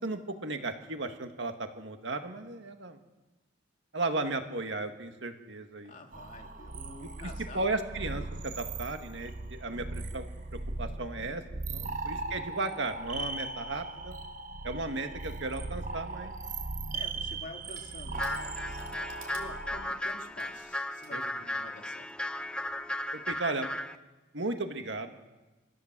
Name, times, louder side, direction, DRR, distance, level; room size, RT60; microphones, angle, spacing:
voice 1, 0.0-3.0 3.9-5.9 7.0-7.3 7.5-10.3 10.8-11.4 11.7-14.2 14.6-16.3 21.1-21.2 23.1-23.7 24.3-25.2, right 2 dB, 70° right, 6 dB, 1.9 m, -35 dB
voice 2, 5.8-7.7 11.8-12.3 16.9-22.1, left 2 dB, 45° left, 2 dB, 2.8 m, -49 dB
sound 1, 6.1-20.0, right 3 dB, 45° right, 1.2 m, -39 dB
Crushing, 17.6-21.2, right 6 dB, 90° right, 4.1 m, -55 dB
sound 2, 18.1-24.0, left 1 dB, 5° left, 0.7 m, -36 dB
24.5 x 16.0 x 7.5 m, 1.1 s
head